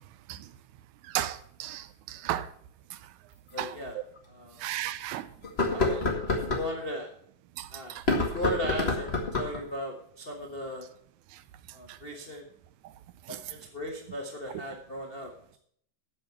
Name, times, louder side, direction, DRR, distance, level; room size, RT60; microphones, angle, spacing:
voice 1, 1.0-2.5 2.9-3.0 3.6-3.8 4.6-5.3 7.6-8.0 11.3-11.4 11.9-12.0 13.3-13.4, right 13 dB, 85° right, 2.0 m, -35 dB
sound 1, 2.2-2.3 3.5-3.6 4.2-4.3 5.4-6.7 7.9-9.6, left 2 dB, 25° left, 1.7 m, -28 dB
voice 2, 3.5-4.0 4.3-4.6 5.7-6.0 6.3-7.1 7.7-10.9 11.7-12.5 13.3-15.3, left 1 dB, 75° left, 0.5 m, -37 dB
8.7 x 7.5 x 7.2 m
omnidirectional pair, 3.4 m